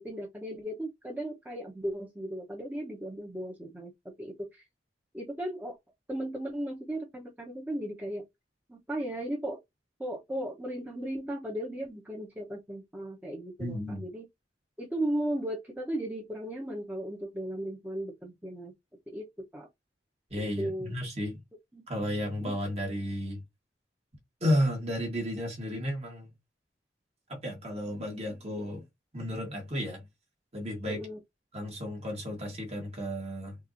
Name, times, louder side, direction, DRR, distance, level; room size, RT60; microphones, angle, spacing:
voice 1, 0.0-4.6 5.1-5.8 6.1-8.2 8.7-9.6 10.0-14.3 14.8-18.7 19.1-19.7 20.6-20.9 21.7-21.8 22.4-22.5 30.8-31.2, right 1 dB, 10° right, 1.0 m, -36 dB
voice 2, 13.6-14.0 20.3-21.4 21.9-23.4 24.4-26.3 27.3-28.8 29.1-30.0 30.5-31.0 31.5-33.6, equal, 35° right, 1.6 m, -32 dB
5.5 x 2.7 x 2.7 m
head